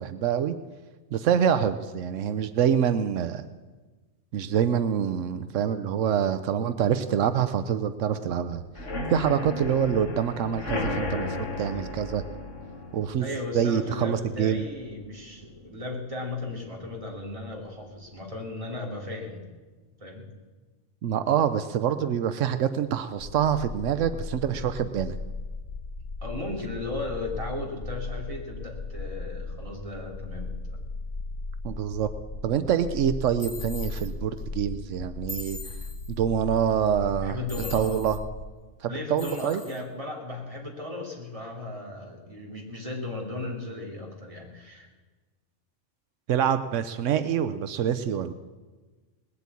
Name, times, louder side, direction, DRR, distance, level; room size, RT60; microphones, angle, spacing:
voice 1, 0.0-0.6 1.1-3.4 4.3-8.6 9.1-12.2 12.9-13.3 13.5-14.6 21.0-25.1 31.6-32.1 32.4-35.6 36.2-37.4 37.7-38.2 38.8-39.6 46.3-48.3, right 9 dB, 85° right, 11 dB, 1.0 m, -26 dB
sound 1, 8.7-16.4 16.7-17.1 17.4-17.5 17.9-18.0, left 2 dB, 75° left, 2.2 m, -35 dB
voice 2, 13.2-19.4 20.0-20.3 26.2-30.8 37.2-38.0 38.9-44.9, left 2 dB, 25° right, -1 dB, 2.9 m, -36 dB
sound 2, 23.2-38.5, left 3 dB, 35° left, 0.6 m, -37 dB
sound 3, 33.4-34.1 35.3-36.2 37.5-38.2 39.2-39.8, left 2 dB, 15° left, 2.0 m, -41 dB
19.5 x 8.3 x 8.4 m, 1.3 s
omnidirectional pair, 1.2 m